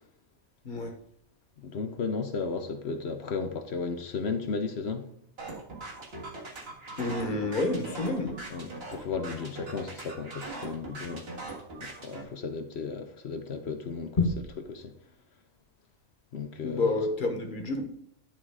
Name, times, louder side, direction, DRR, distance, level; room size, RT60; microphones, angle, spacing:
voice 1, 1.6-5.1 8.5-11.3 11.8-14.2 14.7-14.9 16.3-16.9, left 5 dB, 55° left, 1.0 m, -34 dB
sound 1, 5.4-12.2, right 2 dB, 50° right, 1.9 m, -40 dB
voice 2, 7.0-8.4 14.2-14.4 16.6-17.8, left 3 dB, 40° left, 1.4 m, -28 dB
10.5 x 3.7 x 4.8 m
omnidirectional pair, 1.4 m